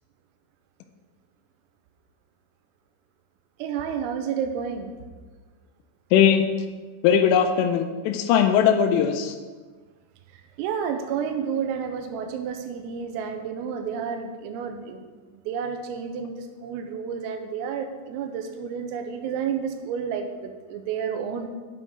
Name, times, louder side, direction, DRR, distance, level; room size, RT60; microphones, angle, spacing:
voice 1, 3.6-4.9 10.6-15.1 15.3-21.5, right 7 dB, 90° right, 6 dB, 3.5 m, -30 dB
voice 2, 6.1-6.4 7.0-9.4, left 8 dB, 85° left, 7 dB, 3.0 m, -19 dB
9.3 x 7.7 x 3.8 m, 1.4 s
omnidirectional pair, 5.8 m